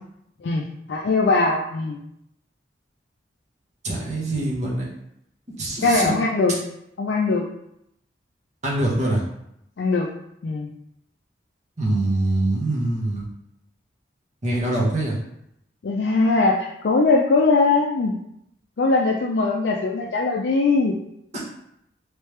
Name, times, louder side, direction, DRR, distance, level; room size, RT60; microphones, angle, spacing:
voice 1, 0.4-2.0 5.8-6.6 7.0-7.5 9.8-10.1 10.4-10.7 15.8-18.2 18.8-21.0, left 3 dB, 65° left, -2 dB, 0.4 m, -21 dB
voice 2, 3.8-4.9 5.6-6.1 8.6-9.2 11.8-13.3 14.4-15.2 21.3-21.4, right 1 dB, 40° right, -4 dB, 1.0 m, -24 dB
3.3 x 3.1 x 3.2 m, 0.78 s
head